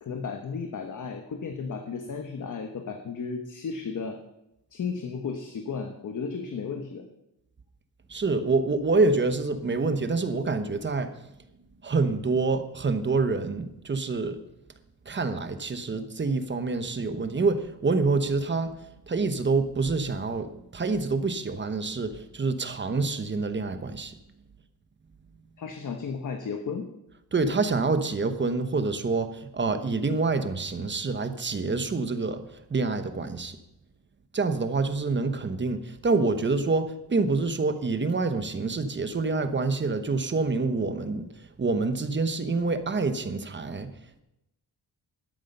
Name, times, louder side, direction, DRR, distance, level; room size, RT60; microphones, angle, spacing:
voice 1, 0.0-4.2 4.7-7.0 25.6-26.9, left 5 dB, 50° left, 5 dB, 1.2 m, -34 dB
voice 2, 8.1-11.1 11.8-14.4 15.1-18.7 19.1-24.1 27.3-32.4 32.7-33.6 34.3-41.3 41.6-43.9, right 3 dB, 30° right, 9 dB, 1.0 m, -27 dB
12.5 x 11.5 x 5.5 m, 0.85 s
wide cardioid pair, 170°, 39 cm